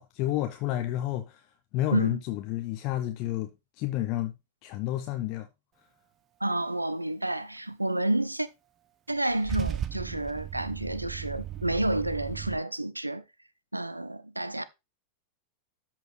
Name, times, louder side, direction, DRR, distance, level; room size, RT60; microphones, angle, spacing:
voice 1, 0.0-4.3 4.6-5.5, left 14 dB, 40° left, 0.8 m, -30 dB
voice 2, 6.4-8.5 9.1-13.2 13.7-14.6, right 1 dB, 85° right, 0.5 m, -30 dB
Car / Engine starting / Idling, 9.1-12.5, right 10 dB, 30° right, 0.8 m, -36 dB
13.0 x 4.5 x 3.2 m
figure-of-eight pair, 90°, 0 cm